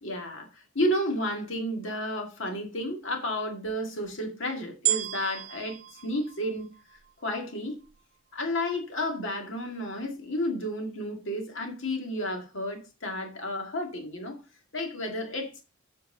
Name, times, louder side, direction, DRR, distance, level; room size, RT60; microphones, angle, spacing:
voice 1, 0.0-6.7 7.2-7.8 8.3-14.4 14.7-15.6, left 1 dB, 65° left, 1.9 m, -32 dB
sound 1, 4.9-7.2 7.9-8.0, right 13 dB, 35° right, 0.5 m, -32 dB
8.0 x 4.6 x 5.3 m
head